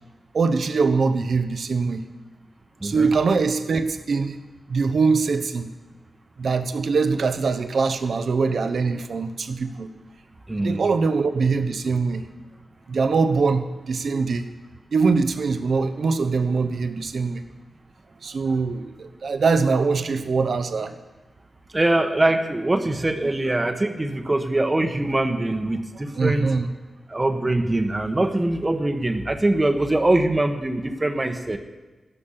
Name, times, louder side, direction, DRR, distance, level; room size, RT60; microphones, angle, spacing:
voice 1, 0.3-2.0 2.8-4.4 4.7-5.7 6.4-9.9 10.6-12.2 12.9-14.5 14.9-17.4 18.2-20.9 26.1-26.7, right 4 dB, 70° right, 9 dB, 1.1 m, -22 dB
voice 2, 10.5-10.9 21.7-26.5 27.1-31.6, right 2 dB, 30° right, 5 dB, 1.3 m, -23 dB
13.0 x 12.5 x 5.8 m, 1.2 s
cardioid pair, 45°, 0 cm